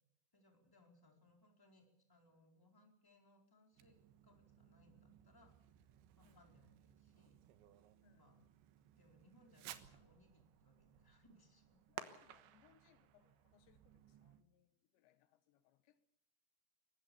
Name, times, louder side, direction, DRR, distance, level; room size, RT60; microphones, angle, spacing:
voice 1, 0.3-5.7 6.2-7.4 8.1-8.4 8.8-11.8, left 1 dB, 5° left, 3.8 m, -70 dB
Fireworks, 3.7-14.4, right 11 dB, 90° right, 3.6 m, -58 dB
voice 2, 6.2-6.5 8.0-8.4 11.9-16.0, left 12 dB, 80° left, 3.5 m, -73 dB
23.5 x 19.5 x 7.0 m
omnidirectional pair, 5.0 m